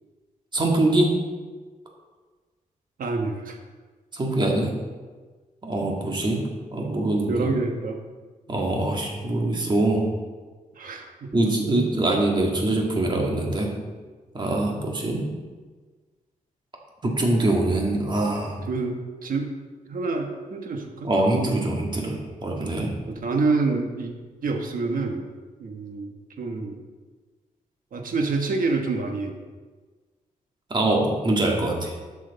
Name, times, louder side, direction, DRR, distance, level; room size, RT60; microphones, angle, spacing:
voice 1, 0.5-1.1 4.1-4.7 5.6-6.4 6.7-7.5 8.5-10.0 11.3-13.7 14.3-15.3 17.0-18.6 21.0-22.9 30.7-31.9, right 2 dB, 30° right, -1 dB, 1.9 m, -23 dB
voice 2, 3.0-3.6 7.3-8.0 10.8-11.3 14.6-14.7 18.7-19.5 19.8-21.1 23.1-24.1 24.4-25.3 25.6-26.8 27.9-29.4, right 3 dB, 70° right, 3 dB, 1.3 m, -27 dB
11.5 x 6.2 x 4.2 m, 1.4 s
wide cardioid pair, 120°, 15 cm